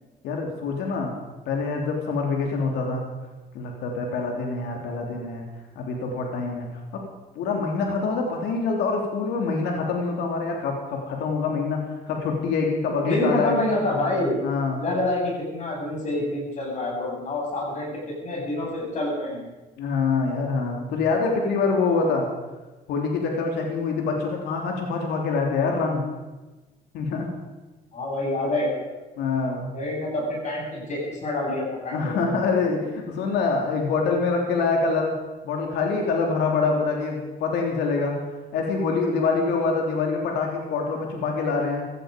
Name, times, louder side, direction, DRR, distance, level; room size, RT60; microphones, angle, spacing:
voice 1, 0.2-1.1 1.4-3.1 3.5-5.4 5.7-6.7 6.9-7.0 7.3-11.8 12.1-13.6 14.4-14.8 19.8-22.3 22.9-26.0 26.9-27.3 29.2-29.7 31.9-35.1 35.4-38.2 38.5-41.8, left 4 dB, 80° left, 1 dB, 3.2 m, -25 dB
voice 2, 13.1-14.4 14.8-19.5 27.9-28.8 29.7-32.2, left 1 dB, 45° left, -2 dB, 7.3 m, -27 dB
17.0 x 14.0 x 5.2 m, 1.2 s
cardioid pair, 110°, 17 cm